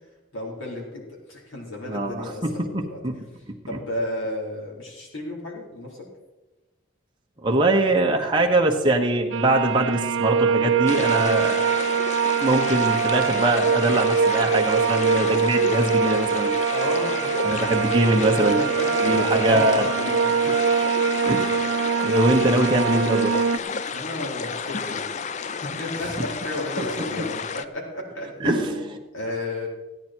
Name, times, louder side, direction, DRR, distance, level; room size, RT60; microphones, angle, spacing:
voice 1, 0.3-3.0 3.7-6.0 16.7-17.5 18.4-20.7 23.9-25.1 25.6-29.7, left 1 dB, 70° left, -3 dB, 4.1 m, -32 dB
voice 2, 1.9-3.2 7.4-11.7 12.4-16.5 17.4-18.6 19.0-19.9 21.2-21.6 22.0-23.3 28.4-28.8, right 1 dB, 20° right, 0 dB, 1.1 m, -22 dB
sound 1, 9.3-23.6, right 6 dB, 70° right, 0.5 m, -23 dB
sound 2, 10.9-27.6, left 5 dB, 35° left, 0.4 m, -31 dB
15.5 x 9.8 x 4.5 m, 1.1 s
head